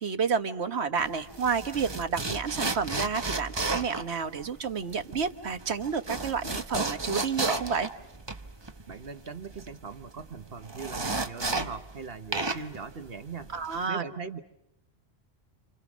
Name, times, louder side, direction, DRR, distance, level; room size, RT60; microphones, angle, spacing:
voice 1, 0.0-7.9 13.5-14.0, right 5 dB, 80° right, 8 dB, 1.6 m, -30 dB
sound 1, 1.0-12.0 12.3-13.8, right 3 dB, 25° right, 1.1 m, -33 dB
voice 2, 8.9-13.5 13.9-14.4, right 5 dB, 65° right, 9 dB, 1.4 m, -40 dB
29.0 x 28.5 x 6.3 m, 0.85 s
omnidirectional pair, 1.1 m